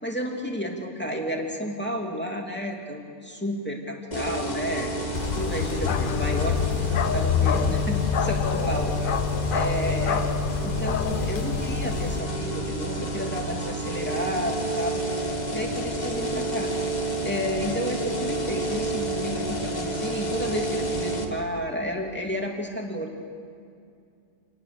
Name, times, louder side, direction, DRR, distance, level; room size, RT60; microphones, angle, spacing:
voice 1, 0.0-4.9 5.3-9.2 9.5-10.3 10.6-15.0 15.5-16.7 17.2-23.2, equal, 5° left, 0 dB, 2.8 m, -31 dB
sound 1, 4.1-21.2, right 1 dB, 30° left, 2.1 m, -29 dB
Bark, 5.2-12.2, left 8 dB, 50° left, 0.7 m, -27 dB
27.5 x 20.0 x 7.0 m, 2.4 s
omnidirectional pair, 1.5 m